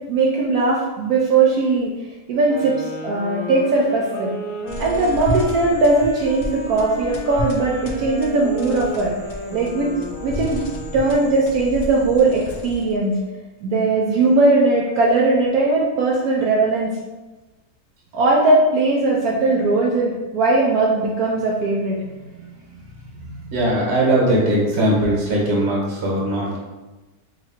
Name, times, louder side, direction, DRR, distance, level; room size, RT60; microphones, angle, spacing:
voice 1, 0.1-1.9 2.3-4.3 4.8-9.1 9.5-9.9 10.2-10.6 10.9-13.1 13.6-16.9 18.1-22.0 22.3-22.4 23.2-23.5, right 3 dB, 75° right, -3 dB, 1.0 m, -19 dB
sound 1, 2.4-11.7, equal, 50° left, 1.0 m, -33 dB
sound 2, 4.7-13.1, left 1 dB, 85° left, 0.4 m, -32 dB
voice 2, 23.5-26.6, right 1 dB, 45° right, -3 dB, 1.2 m, -19 dB
2.9 x 2.6 x 4.2 m, 1.2 s
omnidirectional pair, 1.6 m